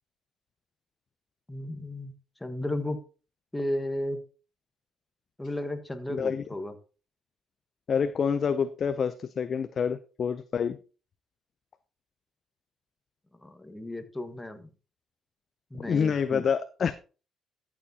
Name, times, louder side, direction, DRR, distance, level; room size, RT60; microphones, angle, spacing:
voice 1, 1.5-2.1 2.4-3.0 3.5-4.2 5.4-6.7 13.4-14.7 15.7-16.4, left 1 dB, 10° left, 8 dB, 1.4 m, -34 dB
voice 2, 7.9-10.8 15.7-16.9, left 6 dB, 50° left, 11 dB, 0.5 m, -27 dB
13.5 x 7.2 x 2.8 m, 0.35 s
supercardioid pair, 75°, 0 cm